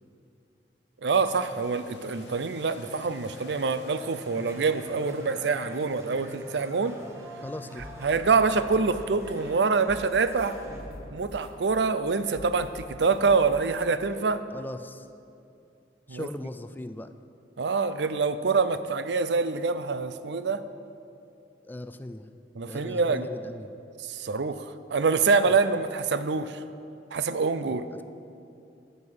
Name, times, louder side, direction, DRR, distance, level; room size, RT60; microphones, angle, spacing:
voice 1, 1.0-7.0 8.0-10.6 11.1-14.4 16.1-16.3 17.6-20.6 22.6-23.2 24.0-24.7 24.9-26.6 27.1-27.8, right 4 dB, 75° right, 12 dB, 0.5 m, -25 dB
sound 1, 1.1-9.7, left 2 dB, 85° left, 0.9 m, -48 dB
sound 2, 3.2-10.8, right 1 dB, 15° right, 1.3 m, -48 dB
voice 2, 7.4-7.9 14.5-15.1 16.1-17.1 21.6-22.3 22.7-23.7 27.7-28.0, left 1 dB, 10° left, 10 dB, 0.4 m, -39 dB
sound 3, 7.8-9.6 9.9-13.8, equal, 35° left, 1.8 m, -45 dB
14.0 x 5.5 x 7.8 m, 2.6 s
head